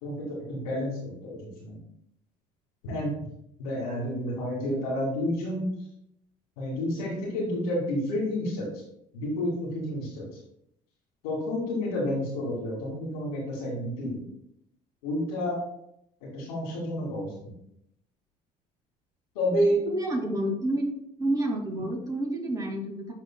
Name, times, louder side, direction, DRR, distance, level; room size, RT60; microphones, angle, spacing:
voice 1, 0.0-1.8 2.8-3.2 3.6-5.7 6.6-8.8 9.1-10.3 11.2-14.2 15.0-15.6 16.2-17.3 19.3-19.8, equal, 90° left, -4 dB, 2.3 m, -30 dB
voice 2, 19.8-20.8 21.2-23.1, right 1 dB, 20° right, -1 dB, 2.1 m, -29 dB
11.0 x 3.8 x 2.2 m, 0.77 s
supercardioid pair, 75°, 18 cm